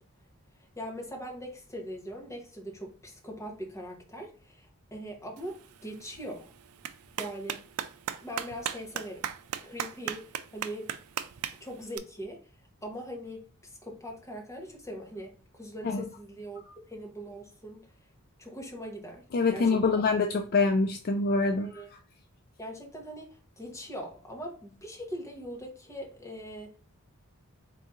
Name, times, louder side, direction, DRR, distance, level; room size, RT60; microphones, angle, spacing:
voice 1, 0.8-6.5 7.2-7.6 8.2-9.3 9.6-10.9 11.6-12.4 12.8-17.9 18.4-20.0 21.4-21.9 22.6-26.8, equal, 15° left, 0 dB, 1.0 m, -41 dB
Clapping, 5.4-12.0, right 9 dB, 75° right, 0.4 m, -39 dB
voice 2, 19.3-21.8, left 4 dB, 45° left, 6 dB, 0.3 m, -25 dB
4.0 x 2.7 x 3.7 m, 0.39 s
head